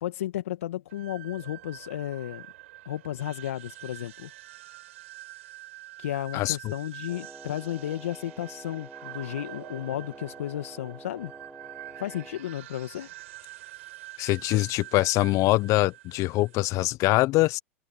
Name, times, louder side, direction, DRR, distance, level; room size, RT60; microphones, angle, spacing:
voice 1, 0.0-2.4 2.9-4.3 6.0-11.3 12.0-13.1, left 12 dB, 75° left, 2.0 m, -33 dB
sound 1, 0.9-16.9, right 16 dB, 65° right, 7.8 m, -46 dB
Wind instrument woodwind instrument, 7.1-12.4, right 2 dB, 5° right, 4.6 m, -47 dB
voice 2, 14.2-17.6, left 19 dB, 45° left, 0.9 m, -23 dB
hypercardioid pair, 95°, 7 cm